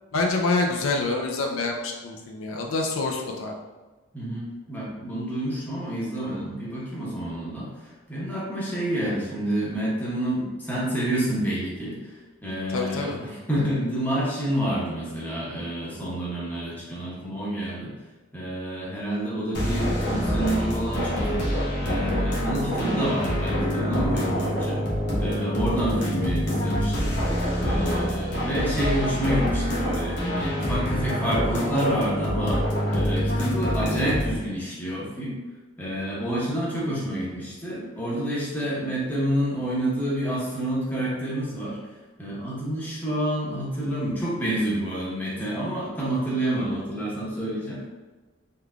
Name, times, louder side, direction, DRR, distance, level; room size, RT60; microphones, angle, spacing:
voice 1, 0.1-3.6 12.7-13.2, left 3 dB, 75° left, 1 dB, 0.4 m, -26 dB
voice 2, 4.1-12.1 12.4-17.9 18.3-24.8 25.2-27.1 27.6-32.6 32.9-35.3 35.8-41.8 42.2-47.9, right 1 dB, 10° left, -7 dB, 0.9 m, -28 dB
sound 1, 19.5-34.3, equal, 55° left, 1.0 m, -26 dB
3.7 x 3.3 x 2.3 m, 1.2 s
head